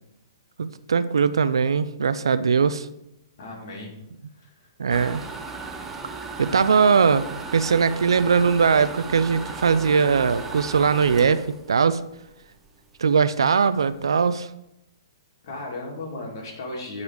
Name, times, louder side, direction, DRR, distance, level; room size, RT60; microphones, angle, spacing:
voice 1, 0.6-2.9 4.8-5.2 6.4-7.3 7.5-11.4 11.7-12.0 13.0-14.5, right 5 dB, 75° right, 14 dB, 0.5 m, -20 dB
voice 2, 3.4-4.1 4.3-4.7 15.4-17.0, left 2 dB, 55° left, -1 dB, 2.5 m, -36 dB
sound 1, 4.9-12.7 13.1-13.2 13.6-13.7 13.9-14.3, right 4 dB, 10° right, 0.7 m, -36 dB
9.8 x 4.1 x 4.8 m, 0.86 s
hypercardioid pair, 125°, 3 cm